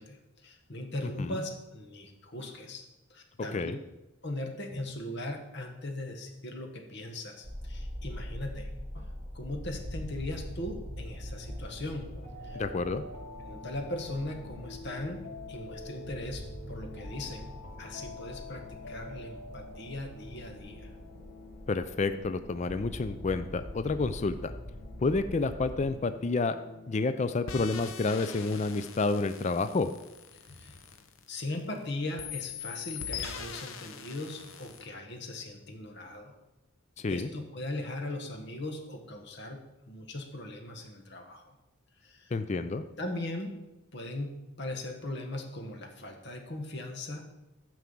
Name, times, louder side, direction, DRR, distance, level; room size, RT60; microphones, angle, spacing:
voice 1, 0.0-3.7 4.2-8.7 8.9-12.1 12.4-12.6 13.5-15.2 15.5-17.5 17.8-20.9 30.5-30.8 31.3-36.4 37.1-41.5 42.0-42.3 43.0-43.5 43.9-47.2, left 1 dB, 50° left, 4 dB, 1.4 m, -39 dB
sound 1, 7.4-25.9, equal, 15° right, 2.9 m, -43 dB
sound 2, 12.1-27.8, left 2 dB, 90° left, 2.5 m, -49 dB
voice 2, 12.5-13.0 21.7-24.5 25.0-26.6 26.9-29.9 37.0-37.3 42.3-42.8, left 3 dB, 30° left, 11 dB, 0.4 m, -29 dB
sound 3, 27.5-31.8 32.2-34.9, left 7 dB, 70° left, 0.8 m, -42 dB
9.6 x 4.7 x 7.1 m, 0.98 s
head